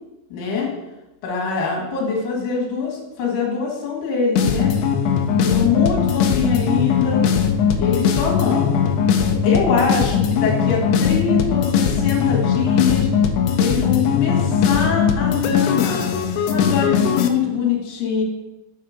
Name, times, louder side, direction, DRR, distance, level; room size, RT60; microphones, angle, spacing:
voice 1, 0.3-0.7 1.2-4.8 5.4-7.3 7.8-8.8 9.4-13.1 13.6-16.1 16.5-18.2, left 6 dB, 60° left, -2 dB, 3.1 m, -23 dB
sound 1, 4.4-17.3, left 7 dB, 85° left, 2.2 m, -19 dB
6.8 x 4.4 x 5.0 m, 1.0 s
omnidirectional pair, 4.9 m